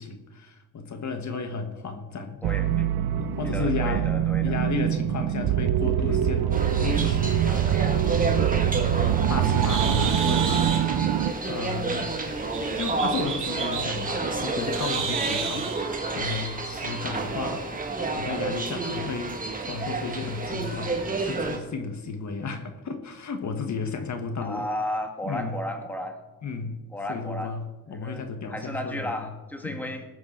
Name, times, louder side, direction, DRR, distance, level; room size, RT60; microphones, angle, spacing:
voice 1, 0.0-2.4 3.0-4.1 4.4-6.5 6.8-8.7 9.3-11.0 11.5-12.0 12.7-17.7 18.1-24.7 25.2-25.6 26.4-26.8 27.1-29.3 29.6-29.9, left 4 dB, 50° left, 7 dB, 1.3 m, -33 dB
voice 2, 2.4-2.9 3.4-4.6 6.0-6.5 24.4-26.2 26.9-27.5 27.9-30.0, left 1 dB, 5° left, 4 dB, 1.5 m, -34 dB
sound 1, 2.4-11.3, right 10 dB, 80° right, 0.8 m, -24 dB
sound 2, 6.5-21.6, right 3 dB, 20° right, 1.6 m, -30 dB
Bird, 8.6-15.8, right 6 dB, 55° right, 1.9 m, -34 dB
20.0 x 7.7 x 4.3 m, 1.1 s
cardioid pair, 125°, 37 cm